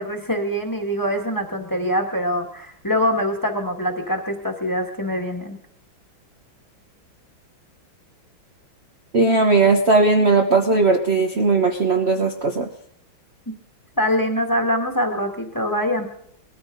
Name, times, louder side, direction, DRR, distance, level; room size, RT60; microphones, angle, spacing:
voice 1, 0.0-5.6 13.5-13.6 14.0-16.1, equal, 10° left, 3 dB, 1.7 m, -24 dB
voice 2, 9.1-12.7, right 3 dB, 40° right, 2 dB, 1.1 m, -18 dB
21.0 x 14.0 x 3.9 m, 0.69 s
omnidirectional pair, 2.2 m